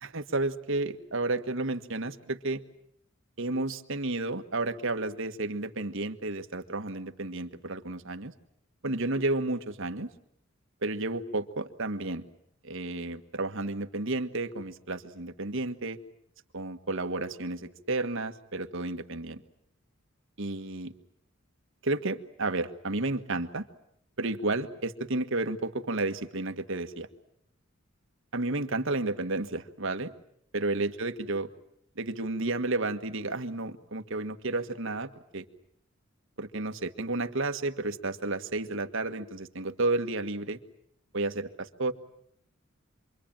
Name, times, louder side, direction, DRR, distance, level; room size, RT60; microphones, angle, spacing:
voice 1, 0.0-2.6 3.4-8.3 8.8-10.1 10.8-12.3 12.6-16.0 16.5-19.4 20.4-20.9 21.8-23.7 24.2-27.1 28.3-30.1 30.5-31.5 32.0-35.4 36.4-40.6 41.1-41.9, right 2 dB, 65° right, 8 dB, 1.7 m, -32 dB
27.5 x 23.5 x 9.0 m, 0.73 s
head